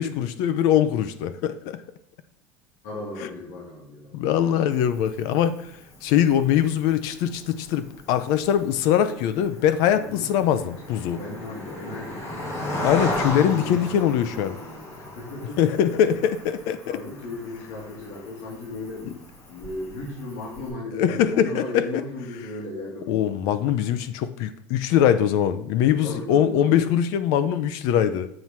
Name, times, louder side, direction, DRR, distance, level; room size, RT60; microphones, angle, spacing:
voice 1, 0.0-1.8 4.1-5.7 6.0-11.2 12.8-14.6 15.6-17.0 21.0-21.9 23.1-28.3, left 9 dB, 60° left, 0.6 m, -22 dB
voice 2, 2.8-4.1 9.9-10.3 11.2-12.8 13.4-15.9 16.8-23.3 26.0-26.9, left 2 dB, 80° left, 3.2 m, -36 dB
Cricket, 4.7-20.7, left 1 dB, 40° left, 2.5 m, -36 dB
7.8 x 4.6 x 5.6 m
cardioid pair, 155°, 7 cm